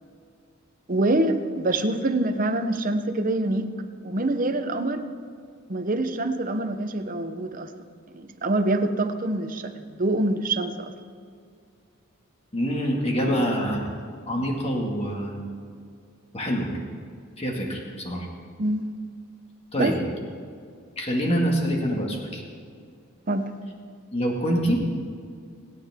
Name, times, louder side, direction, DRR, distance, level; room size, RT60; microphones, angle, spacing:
voice 1, 0.9-3.7 4.0-5.0 5.7-7.7 8.1-10.9 13.2-13.3 18.6-18.9 19.8-19.9 23.3-23.5, right 2 dB, 40° right, 7 dB, 0.8 m, -25 dB
voice 2, 12.5-13.8 14.3-15.3 16.3-16.7 17.4-18.3 19.7-20.0 21.0-22.4 24.1-24.9, equal, 30° left, -1 dB, 2.0 m, -25 dB
26.5 x 9.4 x 3.7 m, 2.2 s
head